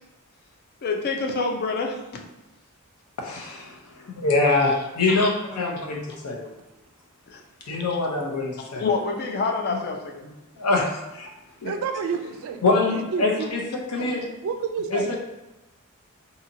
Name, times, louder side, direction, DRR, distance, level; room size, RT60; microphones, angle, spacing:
voice 1, 0.8-2.2 4.5-4.6 7.3-7.4 7.8-8.0 8.8-10.2, left 4 dB, 45° left, 3 dB, 0.4 m, -27 dB
voice 2, 3.2-6.5 7.6-8.9 10.6-11.3 11.6-11.7 12.6-14.3 14.9-15.2, left 3 dB, 90° left, 0 dB, 0.6 m, -24 dB
voice 3, 11.6-12.6 12.9-13.5 14.0-14.1 14.4-15.1, right 6 dB, 65° right, 7 dB, 0.3 m, -29 dB
2.7 x 2.7 x 2.5 m, 0.98 s
head